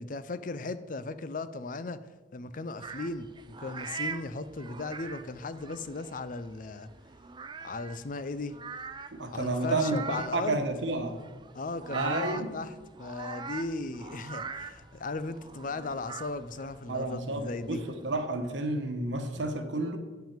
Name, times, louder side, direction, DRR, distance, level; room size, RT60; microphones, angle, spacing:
voice 1, 0.0-2.0 2.3-3.3 3.6-6.9 7.6-8.6 9.3-10.6 11.5-17.8 19.4-19.5, left 3 dB, 45° left, 13 dB, 0.5 m, -37 dB
sound 1, 2.8-18.3, right 5 dB, 25° right, 0.5 m, -43 dB
voice 2, 9.1-10.1 10.3-11.2 11.9-12.5 16.9-20.0, right 2 dB, 85° right, 6 dB, 1.3 m, -31 dB
9.0 x 5.9 x 7.3 m, 1.3 s
head